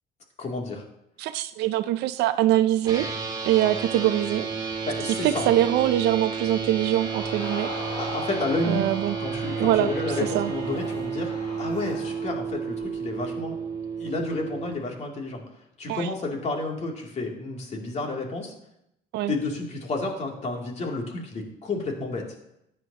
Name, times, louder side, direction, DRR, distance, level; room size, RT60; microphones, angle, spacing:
voice 1, 0.4-0.8 4.8-5.5 8.0-8.9 9.2-13.6 14.0-15.4 15.8-18.5 19.3-22.4, left 2 dB, 40° left, 0 dB, 2.8 m, -31 dB
voice 2, 1.2-3.1 3.4-4.5 5.2-7.7 8.7-9.2 9.6-9.9 10.3-10.5 15.9-16.1 19.1-19.3, right 13 dB, 85° right, 11 dB, 0.5 m, -23 dB
sound 1, 2.8-14.7, right 5 dB, 25° right, 2.5 m, -32 dB
Crowd, 6.9-12.4 12.8-12.9, left 3 dB, 60° left, 3.5 m, -39 dB
14.5 x 9.7 x 2.9 m, 0.79 s
cardioid pair, 110°, 17 cm